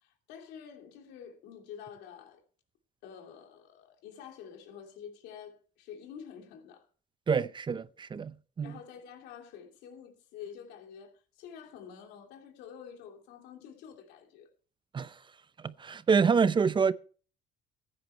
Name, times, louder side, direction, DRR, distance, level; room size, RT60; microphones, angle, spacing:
voice 1, 0.0-2.4 3.0-6.9 8.6-14.5, left 8 dB, 90° left, 2.8 m, -48 dB
voice 2, 7.3-8.8 14.9-15.2 15.6-16.9, right 5 dB, 30° right, 0.6 m, -27 dB
15.0 x 9.6 x 4.4 m
cardioid pair, 110°, 17 cm